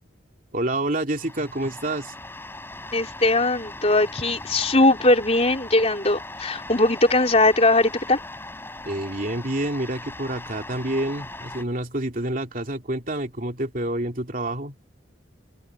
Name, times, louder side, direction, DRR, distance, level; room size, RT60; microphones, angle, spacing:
voice 1, 0.5-2.1 8.8-14.7, right 1 dB, 45° right, 3.0 m, -28 dB
sound 1, 1.2-11.6, left 2 dB, 10° left, 7.4 m, -39 dB
voice 2, 2.9-8.2, left 2 dB, 35° left, 4.0 m, -20 dB
open air
head